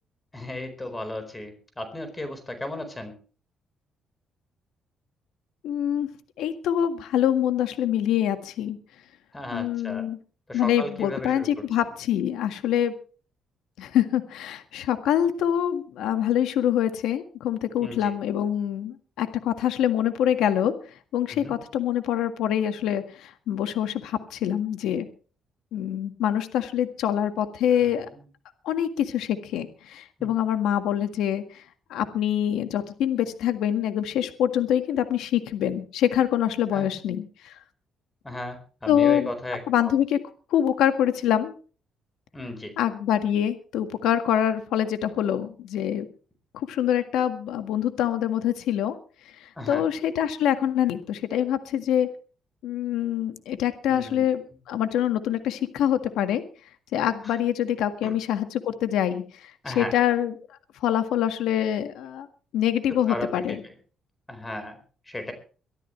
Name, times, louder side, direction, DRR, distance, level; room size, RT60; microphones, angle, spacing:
voice 1, 0.3-3.1 9.3-10.0 10.5-11.5 17.8-18.1 21.3-21.6 27.7-27.9 30.2-30.3 36.7-36.9 38.2-39.6 42.3-42.7 49.6-49.8 53.9-54.3 57.2-57.3 58.0-58.1 59.6-59.9 63.1-63.7 64.3-64.8 65.1-65.3, left 1 dB, 15° left, 8 dB, 4.5 m, -35 dB
voice 2, 5.6-6.1 6.4-8.8 9.5-10.2 10.5-12.9 13.8-20.7 21.1-25.1 25.7-28.1 28.6-31.6 31.9-37.5 38.9-39.3 39.7-40.2 40.5-41.5 42.8-46.1 46.5-48.9 49.3-52.1 52.6-54.4 54.7-56.4 56.9-60.3 60.8-62.3 62.5-63.6, left 10 dB, 85° left, 8 dB, 1.7 m, -25 dB
23.5 x 13.0 x 3.3 m, 0.38 s
cardioid pair, 90°, 0 cm